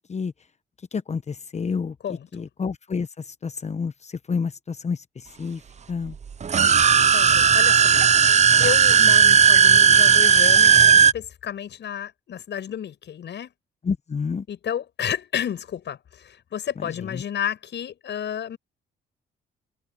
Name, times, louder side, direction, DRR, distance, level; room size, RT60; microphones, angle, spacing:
voice 1, 0.9-2.0 2.3-5.6 5.9-6.1 13.8-14.5 16.8-17.2, left 5 dB, 35° left, 1.0 m, -29 dB
voice 2, 2.0-2.5 7.1-7.9 8.6-13.5 14.5-18.6, left 9 dB, 60° left, 7.7 m, -31 dB
sound 1, 6.4-11.1, right 7 dB, 35° right, 0.7 m, -15 dB
cardioid pair, 90°, 20 cm